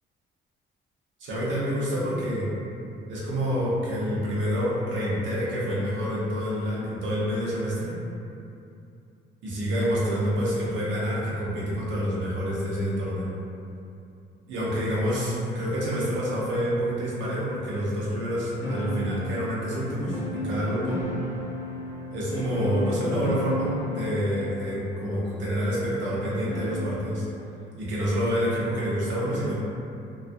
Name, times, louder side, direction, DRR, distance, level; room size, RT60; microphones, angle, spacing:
voice 1, 1.2-2.5 3.1-7.9 9.4-13.3 14.5-21.0 22.1-27.2 27.8-29.5, equal, 70° right, -7 dB, 0.8 m, -27 dB
sound 1, 18.6-27.0, equal, 65° left, 0.5 m, -34 dB
2.3 x 2.3 x 2.5 m, 2.6 s
cardioid pair, 90°, 20 cm